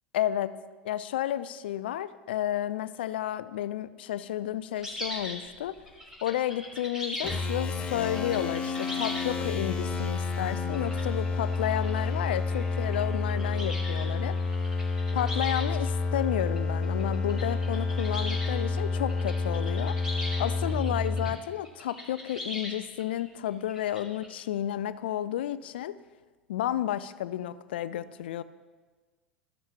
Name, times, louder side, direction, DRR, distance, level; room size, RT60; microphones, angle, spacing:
voice 1, 0.1-0.6 0.8-5.8 6.2-14.4 15.1-20.0 20.4-26.0 26.5-28.4, left 12 dB, 65° left, 16 dB, 0.4 m, -32 dB
sound 1, 4.8-10.1 10.6-15.9 16.2-21.3 21.6-24.3, left 1 dB, 10° right, 3.8 m, -40 dB
sound 2, 7.2-21.3, left 3 dB, 20° left, 1.7 m, -29 dB
14.0 x 12.5 x 2.3 m, 1.4 s
figure-of-eight pair, 75°, 6 cm